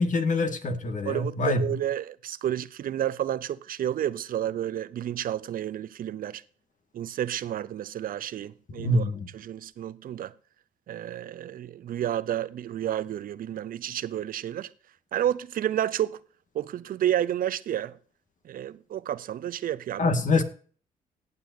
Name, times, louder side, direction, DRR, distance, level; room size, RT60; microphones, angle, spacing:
voice 1, 0.0-1.6 8.8-9.3 20.0-20.4, left 2 dB, 55° left, 1.9 m, -25 dB
voice 2, 1.0-6.4 6.9-9.0 9.3-10.3 10.9-14.7 15.1-16.2 16.5-18.0 18.4-20.1, right 11 dB, 70° right, 0.7 m, -30 dB
18.5 x 6.9 x 2.7 m
supercardioid pair, 65°, 15 cm